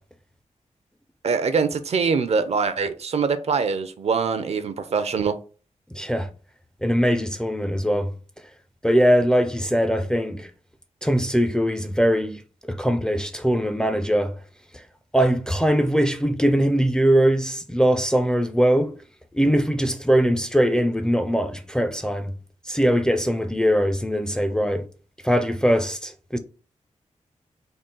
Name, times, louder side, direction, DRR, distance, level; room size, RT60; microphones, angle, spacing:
voice 1, 1.2-5.4, right 5 dB, 60° right, 0.5 m, -23 dB
voice 2, 5.9-6.3 6.8-8.2 8.8-10.5 11.0-14.4 14.7-14.9 15.1-19.0 19.3-22.3 22.6-24.9 25.2-26.4, equal, 5° left, 0.4 m, -21 dB
3.7 x 2.3 x 3.8 m
wide cardioid pair, 120°, 12 cm